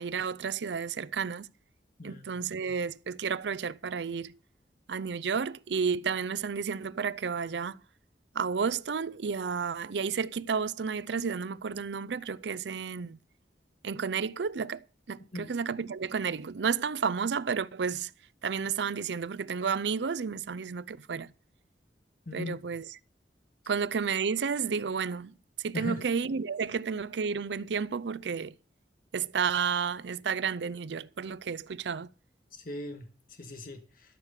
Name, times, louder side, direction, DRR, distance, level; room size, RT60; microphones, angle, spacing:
voice 1, 0.0-1.5 2.0-4.4 4.9-7.8 8.3-13.2 13.8-18.1 18.4-21.3 22.3-22.9 23.7-28.6 29.1-32.1, right 6 dB, 80° right, 0.5 m, -31 dB
voice 2, 2.0-2.4 15.3-15.5 22.3-22.6 25.7-26.0 32.5-34.2, left 2 dB, 55° left, 1.9 m, -39 dB
13.0 x 6.5 x 8.2 m
head